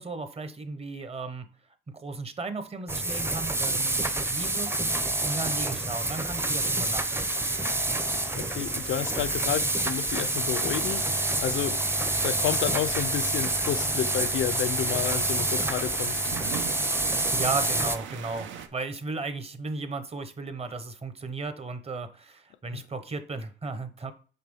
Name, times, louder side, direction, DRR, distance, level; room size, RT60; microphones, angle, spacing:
voice 1, 0.0-1.5 1.9-4.7 5.2-7.3 17.3-24.1, right 3 dB, 30° right, 1.1 m, -35 dB
sound 1, 2.9-18.0, right 2 dB, 10° right, 0.7 m, -28 dB
sound 2, 3.7-18.7, right 8 dB, 75° right, 0.9 m, -43 dB
voice 2, 8.3-11.8 12.2-16.2 22.7-22.8, left 12 dB, 75° left, 0.5 m, -31 dB
5.8 x 3.3 x 5.5 m
cardioid pair, 90°, 20 cm